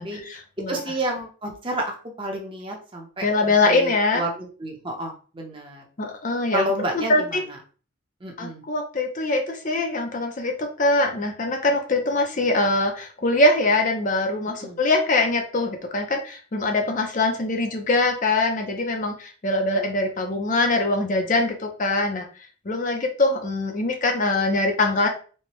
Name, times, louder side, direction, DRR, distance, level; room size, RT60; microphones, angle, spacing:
voice 1, 0.0-0.8 3.2-4.2 6.0-6.6 6.9-7.4 8.4-22.2 22.7-25.1, left 2 dB, 40° left, 3 dB, 0.5 m, -23 dB
voice 2, 0.7-3.3 3.6-5.8 6.5-7.2 8.2-8.6 14.6-14.8, right 1 dB, 25° right, 1 dB, 0.7 m, -30 dB
4.3 x 2.2 x 3.0 m, 0.38 s
head